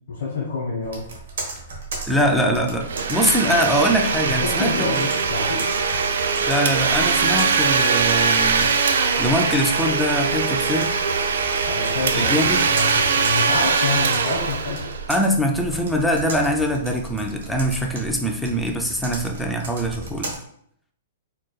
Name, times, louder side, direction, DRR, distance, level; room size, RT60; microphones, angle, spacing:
voice 1, 0.1-1.0 4.2-5.6 11.6-12.3 12.7-12.9 13.2-14.8, left 4 dB, 70° left, -5 dB, 1.1 m, -27 dB
Computer keyboard, 0.8-20.4, right 3 dB, 60° right, 1.1 m, -36 dB
voice 2, 2.0-5.1 6.5-8.7 9.2-10.9 12.1-12.7 15.1-20.3, equal, ahead, 1 dB, 0.3 m, -23 dB
Domestic sounds home sounds, 2.8-15.4, right 5 dB, 80° right, 0.4 m, -22 dB
4.6 x 2.9 x 2.2 m, 0.68 s
hypercardioid pair, 175°, 0 cm